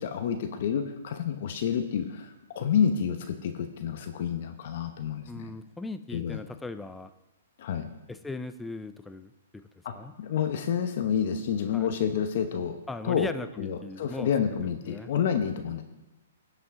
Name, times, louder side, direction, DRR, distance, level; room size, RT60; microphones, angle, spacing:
voice 1, 0.0-5.5 6.1-6.4 7.6-7.9 9.8-12.8 13.0-13.3 13.6-15.8, left 8 dB, 55° left, 7 dB, 0.9 m, -29 dB
voice 2, 5.3-7.1 8.1-9.6 9.9-10.1 11.7-11.9 12.9-14.3 14.8-15.1, left 2 dB, 5° left, 10 dB, 0.4 m, -38 dB
16.5 x 5.6 x 3.7 m, 1.0 s
hypercardioid pair, 135°, 0 cm